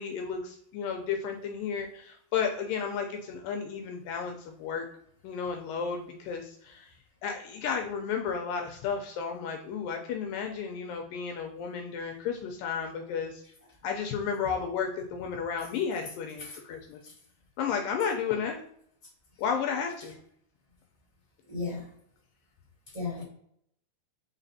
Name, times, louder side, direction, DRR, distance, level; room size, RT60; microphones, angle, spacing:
voice 1, 0.0-4.9 5.2-6.9 7.2-13.4 13.8-17.0 17.6-18.6 19.4-20.2, left 6 dB, 80° left, 2 dB, 2.0 m, -33 dB
voice 2, 21.5-21.9 22.9-23.2, left 3 dB, 80° right, -7 dB, 0.3 m, -35 dB
5.0 x 3.8 x 2.7 m, 0.69 s
omnidirectional pair, 4.4 m